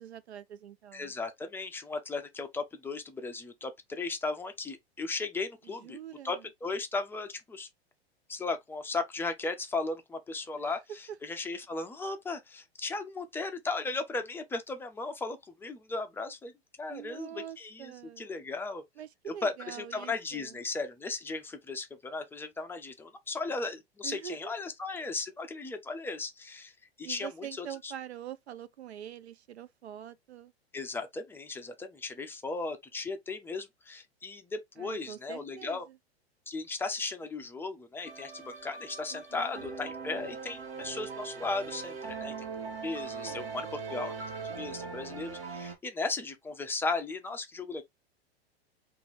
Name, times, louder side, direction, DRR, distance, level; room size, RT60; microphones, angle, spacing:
voice 1, 0.0-1.1 5.6-6.5 10.5-11.2 16.9-18.3 19.0-20.6 24.0-24.5 27.0-30.5 34.8-36.0 39.1-39.5 43.2-43.6, right 10 dB, 80° right, 0.5 m, -45 dB
voice 2, 0.9-6.0 6.2-7.7 8.3-16.5 16.8-18.8 19.4-26.7 27.0-27.9 30.7-35.8 36.5-42.3 42.8-44.1 44.5-47.8, left 3 dB, 5° left, 0.4 m, -36 dB
sound 1, 38.0-45.8, right 5 dB, 65° right, 1.5 m, -40 dB
2.9 x 2.5 x 3.8 m
figure-of-eight pair, 95°, 32 cm